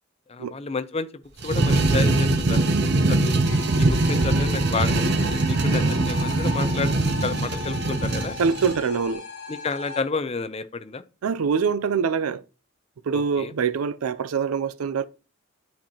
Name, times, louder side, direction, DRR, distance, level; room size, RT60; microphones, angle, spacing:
voice 1, 0.3-1.1 1.4-3.4 3.8-8.3 9.5-11.0 13.1-13.5, left 4 dB, 30° left, 0.4 m, -31 dB
sound 1, 1.4-8.8, right 2 dB, 50° right, 0.7 m, -22 dB
sound 2, 3.4-10.0, left 4 dB, 80° left, 1.6 m, -38 dB
voice 2, 8.4-9.2 11.2-12.4 13.1-15.0, right 6 dB, 85° right, 0.4 m, -24 dB
10.0 x 4.4 x 2.8 m
head